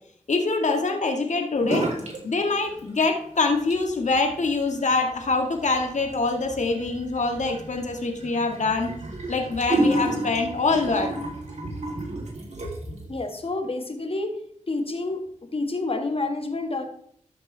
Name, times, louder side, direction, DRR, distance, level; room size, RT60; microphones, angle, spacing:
voice 1, 0.3-1.9 2.2-8.9 9.3-11.1, left 3 dB, 65° left, 4 dB, 1.7 m, -24 dB
sound 1, 1.6-2.2 2.5-3.2 3.5-13.0, right 1 dB, 60° right, 3.3 m, -31 dB
sound 2, 8.6-13.6, right 3 dB, 85° right, 2.3 m, -44 dB
voice 2, 13.1-14.4 14.7-15.2 15.5-16.8, left 2 dB, 45° left, 5 dB, 1.8 m, -28 dB
13.0 x 5.9 x 3.4 m, 0.66 s
cardioid pair, 45°, 13 cm